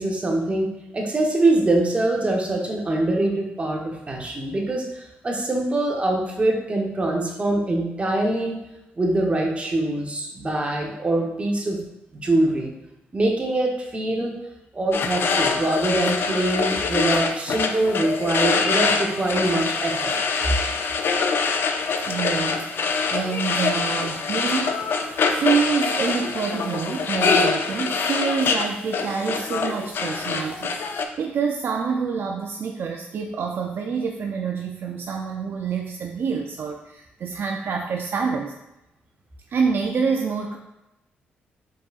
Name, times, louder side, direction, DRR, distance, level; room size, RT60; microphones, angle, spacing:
voice 1, 0.0-8.6 9.0-11.8 12.1-12.7 13.1-14.3 14.7-20.2, right 2 dB, 30° right, 0 dB, 1.0 m, -23 dB
sound 1, 14.9-31.1, left 4 dB, 60° left, 0.4 m, -24 dB
voice 2, 22.1-25.0 25.3-38.5 39.5-40.6, right 6 dB, 60° right, 2 dB, 0.4 m, -27 dB
4.6 x 4.1 x 2.4 m, 0.92 s
cardioid pair, 65°, 4 cm